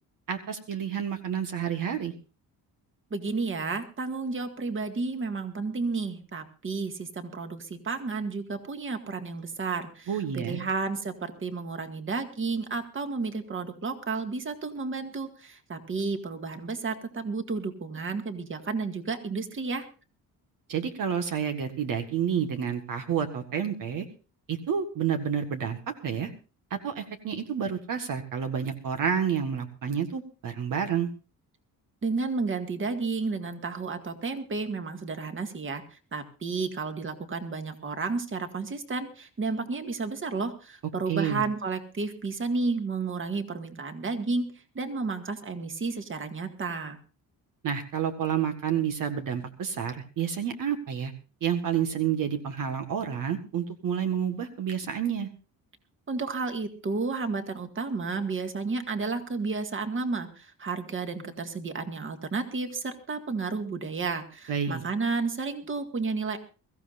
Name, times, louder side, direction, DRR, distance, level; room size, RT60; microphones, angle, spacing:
voice 1, 0.3-2.1 10.1-10.6 20.7-24.1 24.5-26.3 26.7-31.1 41.1-41.4 47.6-51.1 51.4-55.3 64.5-64.8, right 8 dB, 60° right, 5 dB, 1.7 m, -29 dB
voice 2, 3.1-19.9 32.0-47.0 56.1-66.4, right 4 dB, 35° right, 6 dB, 2.0 m, -32 dB
23.0 x 14.5 x 2.6 m, 0.34 s
cardioid pair, 110°, 37 cm